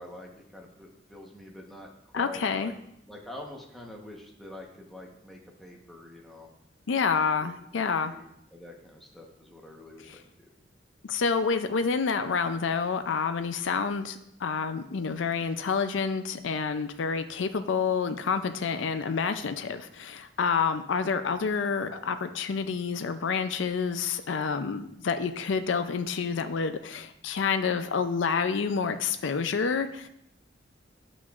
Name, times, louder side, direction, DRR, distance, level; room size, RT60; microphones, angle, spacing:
voice 1, 0.0-2.7 3.1-6.5 7.4-10.5, left 1 dB, ahead, -2 dB, 1.1 m, -46 dB
voice 2, 2.1-2.7 6.9-8.1 10.1-10.2 11.0-30.1, left 5 dB, 80° left, 9 dB, 0.5 m, -28 dB
11.0 x 6.0 x 2.5 m, 0.76 s
head